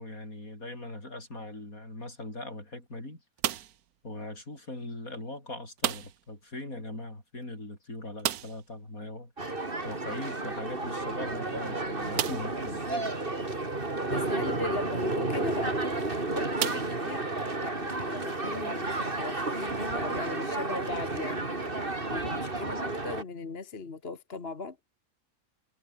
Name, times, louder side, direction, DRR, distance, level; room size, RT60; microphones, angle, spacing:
voice 1, 0.0-3.2 4.0-13.1, left 2 dB, 75° left, 8.1 m, -40 dB
sound 1, 3.4-3.9 5.8-6.3 6.6-6.7 7.0-7.1 8.2-8.7 10.5-10.6 11.2-11.3 12.1-12.6 13.4-13.5 15.5-15.7 16.6-17.5, right 11 dB, 90° right, 1.4 m, -33 dB
sound 2, 9.4-23.2, right 2 dB, 35° right, 3.4 m, -32 dB
voice 2, 14.0-17.3 17.6-21.5 22.1-24.8, left 4 dB, 45° left, 1.9 m, -39 dB
omnidirectional pair, 1.5 m